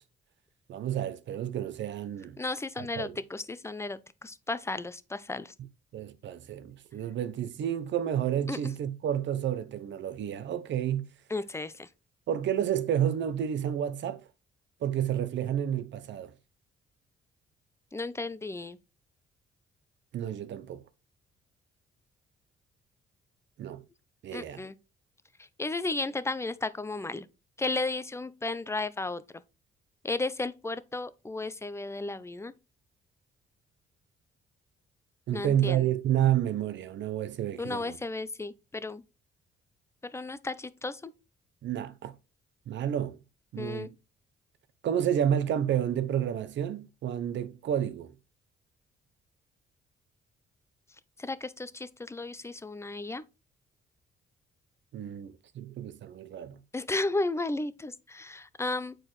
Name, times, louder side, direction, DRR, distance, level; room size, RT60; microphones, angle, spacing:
voice 1, 0.7-2.4 2.8-3.1 5.9-11.0 12.3-14.2 14.8-16.3 20.1-20.8 23.6-23.8 24.2-24.6 35.3-38.0 41.6-42.1 42.7-43.2 43.5-43.9 44.8-48.1 54.9-56.6, right 10 dB, 65° right, 0.7 m, -30 dB
voice 2, 2.4-5.5 8.5-8.8 11.3-11.9 17.9-18.8 24.3-24.7 25.4-27.3 27.6-29.4 30.0-32.5 35.3-35.9 37.6-39.0 40.0-41.1 43.6-43.9 51.2-53.2 56.7-59.0, left 2 dB, 15° left, 0.5 m, -34 dB
7.6 x 4.5 x 3.1 m
cardioid pair, 90°, 20 cm